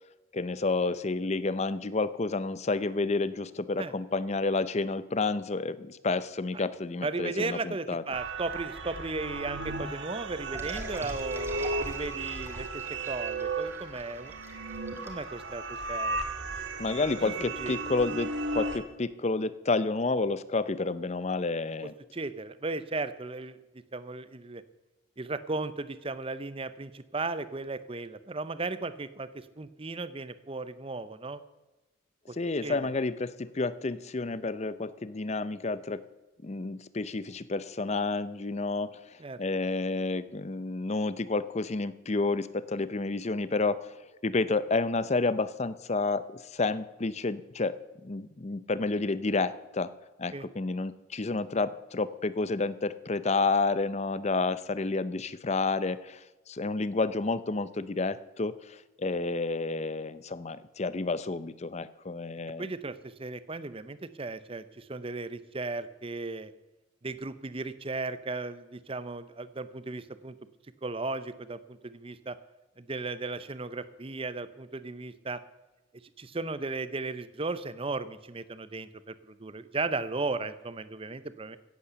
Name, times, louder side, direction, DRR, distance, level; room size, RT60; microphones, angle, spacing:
voice 1, 0.3-8.0 16.8-21.9 32.3-36.0 36.4-49.9 50.2-62.7, left 3 dB, 35° left, 16 dB, 0.6 m, -30 dB
voice 2, 7.0-14.4 15.0-16.2 17.2-17.3 17.6-17.8 21.8-23.6 23.9-24.6 25.2-31.4 32.3-32.4 32.6-32.8 39.2-39.4 50.3-50.5 62.6-66.5 67.0-70.3 70.8-72.4 72.8-75.4 76.2-81.6, right 3 dB, 30° right, 14 dB, 0.7 m, -36 dB
sound 1, 8.1-18.8, right 3 dB, 60° right, 1.6 m, -35 dB
sound 2, 10.5-15.9, right 1 dB, 10° right, 1.8 m, -46 dB
16.5 x 8.6 x 6.9 m, 1.1 s
head